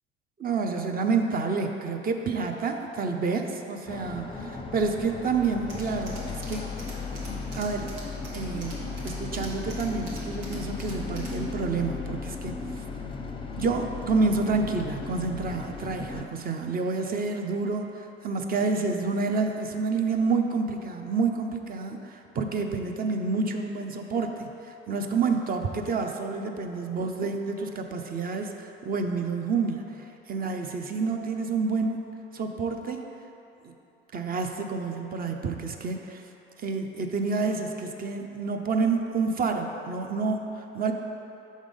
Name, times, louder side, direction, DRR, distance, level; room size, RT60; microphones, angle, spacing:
voice 1, 0.4-6.6 7.2-7.9 8.3-12.8 13.5-33.0 33.6-33.7 34.1-36.2 36.6-40.9, right 4 dB, 30° right, 4 dB, 0.6 m, -29 dB
sound 1, 3.9-16.2, left 4 dB, 15° left, 0.6 m, -36 dB
Tools, 5.7-11.5, right 1 dB, 75° right, 1.4 m, -45 dB
6.2 x 3.7 x 5.2 m, 2.9 s
hypercardioid pair, 65°, 29 cm